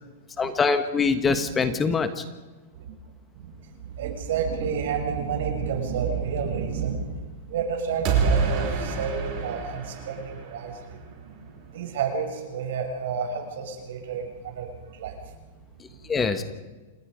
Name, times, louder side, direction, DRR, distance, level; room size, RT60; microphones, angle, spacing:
voice 1, 0.4-2.2 16.1-16.4, left 5 dB, 15° left, 9 dB, 1.3 m, -23 dB
voice 2, 1.1-1.5 2.7-2.9 3.3-3.5 3.8-7.2 7.5-15.4 15.9-16.0, right 6 dB, 70° right, 3 dB, 6.4 m, -30 dB
sound 1, 8.1-11.0, right 5 dB, 40° right, 5.7 m, -26 dB
28.0 x 20.0 x 5.2 m, 1.2 s
hypercardioid pair, 145°, 0 cm